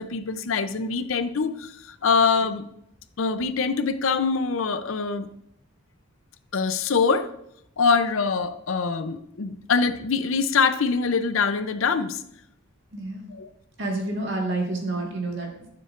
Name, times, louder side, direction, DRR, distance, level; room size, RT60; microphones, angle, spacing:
voice 1, 0.0-2.7 3.2-5.3 6.5-7.3 7.8-12.2 13.3-13.5, left 5 dB, 70° left, 10 dB, 0.6 m, -24 dB
voice 2, 12.9-13.3 13.8-15.5, right 2 dB, 60° right, 0 dB, 1.6 m, -28 dB
12.0 x 6.8 x 2.5 m, 0.76 s
head